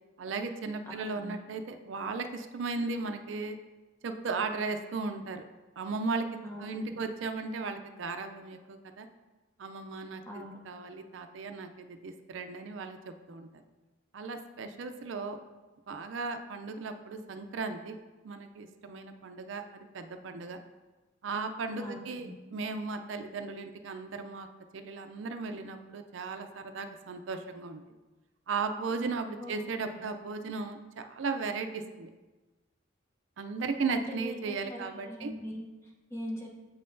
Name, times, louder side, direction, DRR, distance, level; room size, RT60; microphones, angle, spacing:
voice 1, 0.2-3.6 4.0-5.4 5.8-6.3 6.6-9.1 9.6-13.6 14.1-15.4 15.9-18.0 18.2-20.6 21.2-24.5 24.7-27.8 28.5-32.1 33.4-35.3, right 4 dB, 70° right, 7 dB, 0.4 m, -36 dB
voice 2, 0.9-1.4 6.4-7.0 10.3-10.6 21.8-22.4 29.4-29.6 29.8-29.9 33.9-36.5, left 1 dB, 15° left, -2 dB, 0.8 m, -42 dB
7.5 x 5.5 x 2.6 m, 1.2 s
head